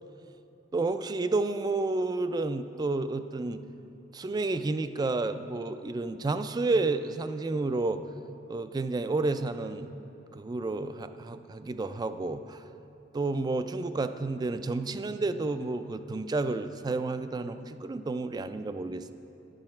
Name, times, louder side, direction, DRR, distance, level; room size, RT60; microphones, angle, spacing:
voice 1, 0.7-3.6 4.1-8.0 8.5-9.9 10.3-12.6 13.1-19.1, right 3 dB, 20° right, 10 dB, 0.3 m, -30 dB
11.5 x 7.8 x 4.3 m, 2.9 s
head